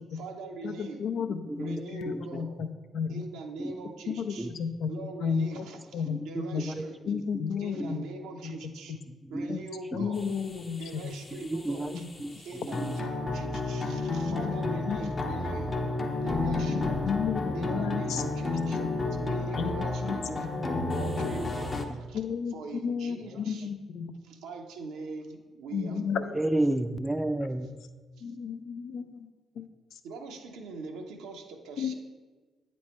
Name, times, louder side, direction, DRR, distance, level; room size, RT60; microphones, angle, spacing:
voice 1, 0.1-1.1 1.6-2.5 3.1-4.5 4.9-7.0 7.6-9.0 9.3-10.3 10.8-12.0 12.3-15.8 16.2-17.0 17.5-18.8 19.2-20.5 20.9-22.2 22.5-23.7 24.2-26.3 28.2-28.3 30.0-31.9, right 3 dB, 75° right, 3 dB, 0.7 m, -42 dB
voice 2, 0.6-3.2 4.1-4.9 5.2-5.6 5.9-6.6 7.1-8.0 8.4-8.6 8.9-9.0 9.5-9.6 9.9-11.1 11.9-12.0 14.1-14.6 14.9-15.1 16.7-18.2 18.8-18.9 19.6-20.2 20.4-20.9 22.1-24.1 25.7-26.2 28.2-29.3 29.6-29.7 29.9-30.0 31.8-31.9, left 6 dB, 70° left, 8 dB, 0.4 m, -33 dB
voice 3, 1.5-2.2 3.6-3.7 4.4-4.5 6.1-7.2 7.8-7.9 9.2-9.6 9.9-10.1 11.3-11.9 12.2-12.4 12.6-12.9 16.7-17.1 17.7-17.8 20.3-20.4 26.3-27.7, right 1 dB, 15° right, 10 dB, 0.5 m, -32 dB
sound 1, 10.2-21.9, left 3 dB, 35° left, 0.7 m, -31 dB
8.5 x 3.2 x 4.2 m, 1.3 s
hypercardioid pair, 50°, 0 cm